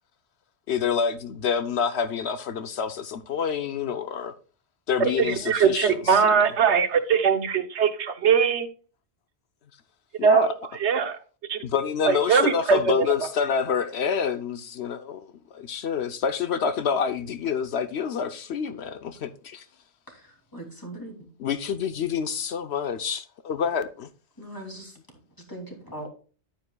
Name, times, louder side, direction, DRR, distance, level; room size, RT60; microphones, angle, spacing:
voice 1, 0.7-4.3 4.9-6.0 10.2-10.5 11.6-19.7 21.4-24.1, left 7 dB, 70° left, 1.0 m, -27 dB
voice 2, 5.0-8.7 10.2-11.2 11.5-11.6 12.0-13.1, right 6 dB, 80° right, 1.2 m, -21 dB
voice 3, 20.1-21.3 24.4-25.0 25.5-26.1, right 1 dB, 20° left, 2.8 m, -40 dB
10.5 x 9.5 x 2.3 m
omnidirectional pair, 1.2 m